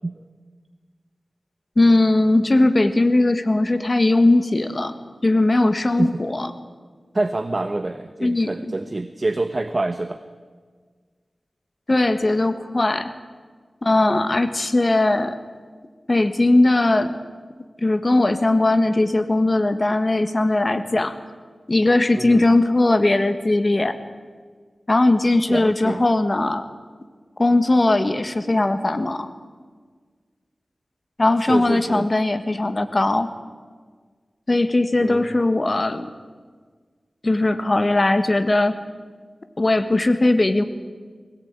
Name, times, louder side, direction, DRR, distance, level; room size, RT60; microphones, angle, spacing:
voice 1, 1.8-4.9 5.2-6.5 8.2-8.5 11.9-13.1 13.8-15.4 16.1-17.1 17.8-21.2 21.7-23.9 24.9-26.6 27.4-29.3 31.2-33.3 34.5-36.1 37.2-38.8 39.6-40.6, left 2 dB, 40° left, 9 dB, 1.5 m, -19 dB
voice 2, 7.1-10.2 22.1-22.4 25.5-26.0 31.5-32.1 35.0-35.4, right 2 dB, 40° right, 9 dB, 0.9 m, -26 dB
21.0 x 17.5 x 8.9 m, 1.6 s
wide cardioid pair, 70°, 0 cm